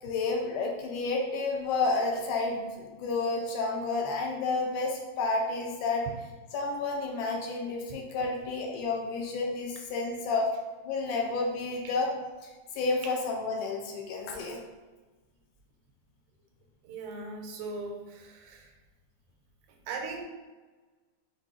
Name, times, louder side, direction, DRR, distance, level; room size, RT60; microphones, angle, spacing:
voice 1, 0.0-6.1 6.5-10.5 10.8-12.1 12.4-14.6, left 3 dB, 80° left, 1 dB, 2.1 m, -30 dB
voice 2, 16.8-18.7 19.9-20.2, right 3 dB, 90° right, 2 dB, 2.3 m, -39 dB
6.1 x 2.7 x 2.9 m, 1.3 s
omnidirectional pair, 3.7 m